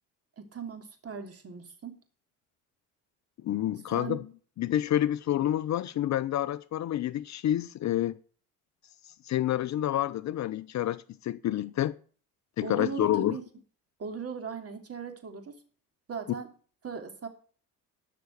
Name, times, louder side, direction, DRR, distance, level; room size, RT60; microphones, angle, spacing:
voice 1, 0.4-2.0 3.9-4.2 12.6-13.4 14.0-15.6 16.1-16.5 16.8-17.3, right 6 dB, 35° right, 3.0 m, -38 dB
voice 2, 3.4-4.2 4.6-8.2 9.2-12.0 12.6-13.4, left 12 dB, 45° left, 0.6 m, -28 dB
12.5 x 6.0 x 6.6 m
hypercardioid pair, 70°, 39 cm